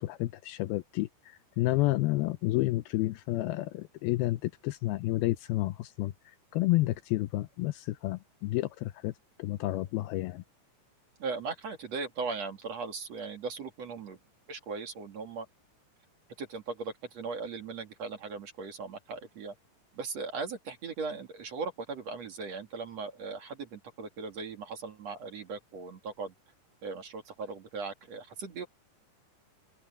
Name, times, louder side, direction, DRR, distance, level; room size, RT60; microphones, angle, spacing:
voice 1, 0.0-9.1 9.4-10.4, left 18 dB, 85° left, 2.2 m, -30 dB
voice 2, 11.2-14.2 14.5-15.5 16.4-19.5 19.9-26.3 26.8-28.7, right 4 dB, 45° right, 2.7 m, -38 dB
omnidirectional pair, 5.2 m